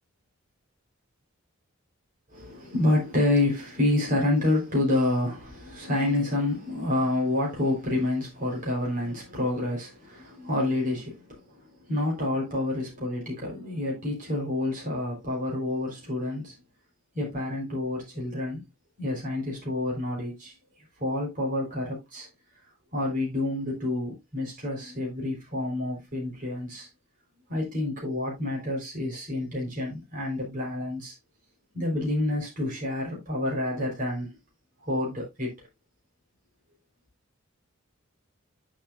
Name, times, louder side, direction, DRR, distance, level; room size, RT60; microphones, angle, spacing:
voice 1, 2.3-16.6 17.1-18.7 19.0-20.6 21.0-22.3 22.9-26.9 27.5-31.1 31.7-34.3 34.8-35.7, left 1 dB, 40° right, 3.9 m, -28 dB
9.7 x 7.1 x 2.4 m
head